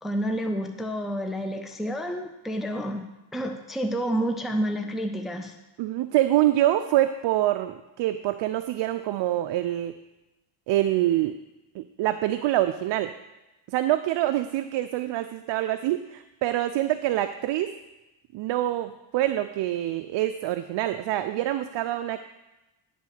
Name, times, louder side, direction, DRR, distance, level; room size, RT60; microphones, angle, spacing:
voice 1, 0.0-3.1 3.3-5.6, equal, ahead, 4 dB, 0.6 m, -29 dB
voice 2, 5.8-9.9 10.7-11.4 11.7-13.1 13.7-17.7 18.3-22.2, right 14 dB, 65° right, 9 dB, 0.5 m, -25 dB
10.0 x 3.9 x 6.4 m, 1.0 s
cardioid pair, 80°, 49 cm